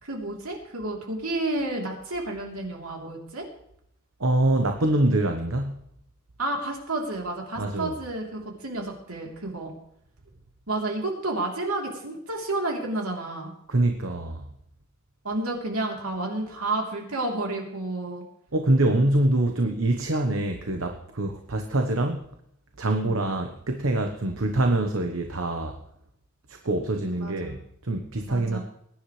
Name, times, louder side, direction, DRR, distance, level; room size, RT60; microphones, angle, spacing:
voice 1, 0.0-3.5 6.4-9.7 10.7-13.5 15.2-18.2 22.9-23.1 27.2-27.6 28.3-28.6, right 2 dB, 85° right, 0 dB, 3.4 m, -31 dB
voice 2, 4.2-5.8 7.6-7.9 13.7-14.5 18.5-22.3 22.8-25.8 26.5-28.6, right 1 dB, 65° right, 5 dB, 1.1 m, -25 dB
21.5 x 10.5 x 3.3 m, 0.72 s
head